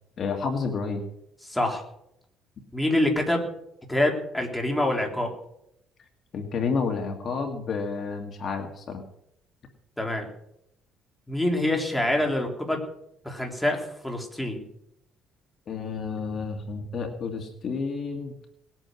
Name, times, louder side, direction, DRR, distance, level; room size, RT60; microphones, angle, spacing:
voice 1, 0.2-1.0 6.3-9.0 15.7-18.3, left 5 dB, 45° left, 4 dB, 2.2 m, -30 dB
voice 2, 1.5-1.8 2.7-3.4 3.9-5.3 10.0-10.3 11.3-12.8 13.3-14.6, left 1 dB, 5° left, 1 dB, 3.5 m, -25 dB
19.5 x 9.1 x 6.4 m, 0.76 s
cardioid pair, 125°, 0 cm